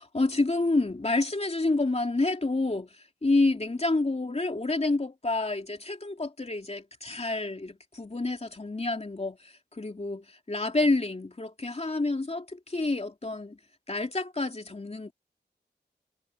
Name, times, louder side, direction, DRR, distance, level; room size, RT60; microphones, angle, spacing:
voice 1, 0.0-2.9 3.2-13.6 13.9-15.1, left 2 dB, 35° left, 2.9 m, -28 dB
wide cardioid pair, 85°, 18 cm